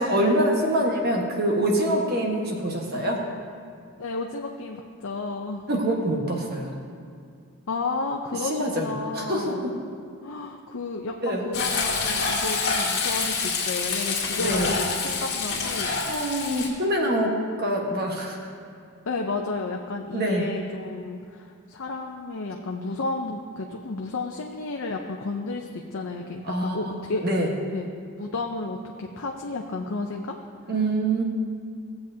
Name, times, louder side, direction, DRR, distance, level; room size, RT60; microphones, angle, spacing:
voice 1, 0.0-3.2 5.7-6.8 8.4-9.7 11.2-11.5 14.4-14.7 16.1-18.4 20.1-20.4 26.4-26.8 27.2-27.5 30.7-31.2, right 1 dB, 45° right, -1 dB, 1.4 m, -25 dB
voice 2, 4.0-5.7 7.7-9.6 10.2-15.9 19.1-27.3 27.7-27.9 28.2-30.4, left 3 dB, 65° left, 1 dB, 0.6 m, -32 dB
Frying (food), 11.5-16.7, left 4 dB, 50° left, 2.0 m, -27 dB
16.5 x 7.8 x 2.8 m, 2.3 s
head